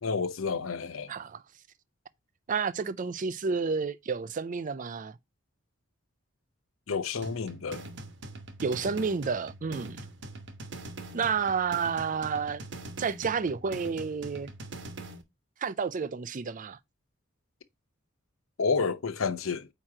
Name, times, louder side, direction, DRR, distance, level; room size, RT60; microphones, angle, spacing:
voice 1, 0.0-1.1 6.9-7.8 18.6-19.7, left 5 dB, 85° left, 0.7 m, -30 dB
voice 2, 1.1-1.4 2.5-5.2 8.6-10.0 11.1-12.6 13.0-14.5 15.6-16.8, right 5 dB, 40° right, 0.4 m, -30 dB
sound 1, 7.2-15.2, right 2 dB, 65° right, 1.1 m, -43 dB
8.8 x 3.0 x 4.8 m
head